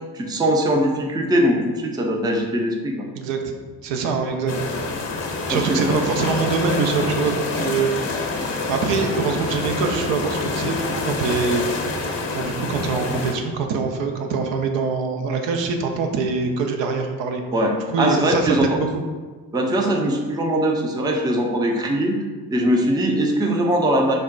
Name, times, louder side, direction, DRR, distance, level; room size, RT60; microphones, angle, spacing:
voice 1, 0.1-3.1 5.5-6.0 17.5-18.8 19.5-22.2 22.5-24.1, equal, 10° right, 1 dB, 0.5 m, -21 dB
voice 2, 3.1-3.5 3.8-4.9 5.4-8.3 8.7-11.6 12.3-17.4 17.8-19.0, right 4 dB, 65° right, 4 dB, 0.6 m, -24 dB
sound 1, 4.5-13.3, left 3 dB, 30° left, 0.7 m, -26 dB
3.5 x 2.1 x 3.8 m, 1.4 s
hypercardioid pair, 50°, 48 cm